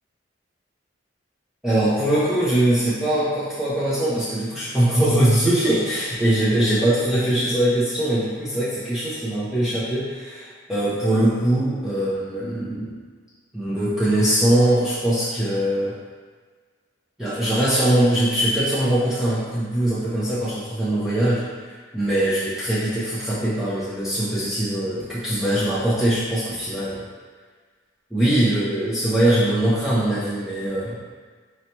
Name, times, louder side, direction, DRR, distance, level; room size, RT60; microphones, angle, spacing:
voice 1, 1.6-13.0 13.5-15.9 17.2-27.0 28.1-31.0, right 1 dB, 5° right, -11 dB, 0.7 m, -22 dB
4.3 x 2.9 x 3.0 m, 1.5 s
head